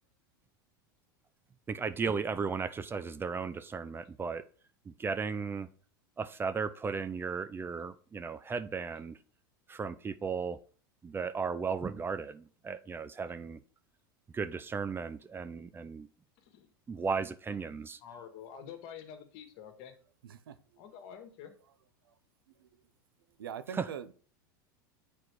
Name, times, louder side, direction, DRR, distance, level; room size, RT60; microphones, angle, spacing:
voice 1, 1.7-4.4 4.9-5.7 6.2-9.2 9.7-10.6 11.0-13.6 14.3-16.1 16.9-18.0 23.7-23.9, right 5 dB, 20° right, 0.5 m, -35 dB
voice 2, 17.7-19.9 20.8-21.5, left 8 dB, 60° left, 1.6 m, -48 dB
voice 3, 20.2-20.8 22.6-22.7 23.4-24.1, right 8 dB, 85° right, 0.7 m, -43 dB
7.7 x 4.3 x 4.6 m
hypercardioid pair, 100°, 12 cm